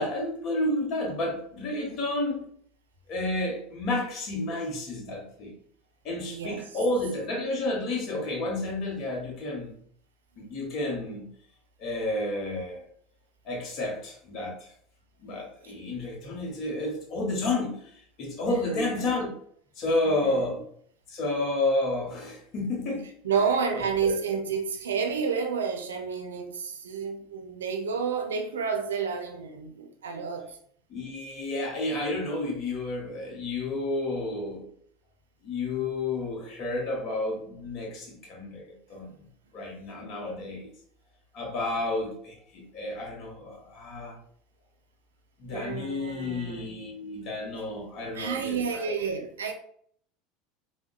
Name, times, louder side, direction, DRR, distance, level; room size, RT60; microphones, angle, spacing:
voice 1, 0.0-2.5 3.1-5.5 6.0-9.7 10.4-11.3 11.8-12.9 13.4-14.7 15.2-19.3 19.8-20.6 21.1-23.1 24.0-24.1 30.9-34.7 35.4-39.2 39.5-40.7 41.3-44.2 45.4-48.9, left 2 dB, 50° left, 0.9 m, -31 dB
voice 2, 6.3-6.6 15.6-15.7 18.5-19.1 20.0-20.6 23.2-30.6 38.9-39.0 45.5-46.6 48.1-49.5, right 6 dB, 80° right, 0.4 m, -30 dB
3.6 x 2.1 x 2.3 m
hypercardioid pair, 80°, 0 cm